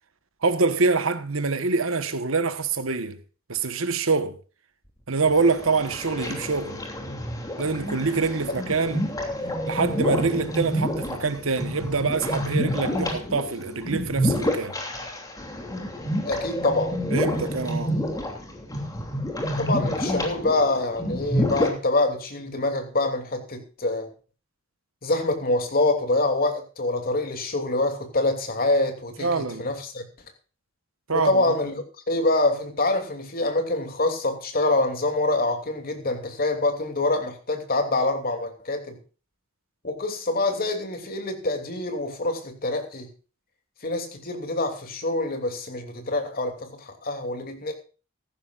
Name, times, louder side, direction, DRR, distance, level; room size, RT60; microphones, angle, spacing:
voice 1, 0.4-3.2 3.5-4.4 5.1-6.8 7.6-9.1 9.7-14.8 17.1-18.0 29.2-29.7 31.1-31.4, right 4 dB, 70° right, 1.4 m, -25 dB
sound 1, 5.2-21.8, equal, 15° left, 2.9 m, -28 dB
voice 2, 16.2-17.0 19.6-24.1 25.0-30.0 31.1-39.0 39.8-43.1 43.8-47.7, left 2 dB, 45° left, 2.9 m, -25 dB
16.5 x 14.5 x 2.5 m
head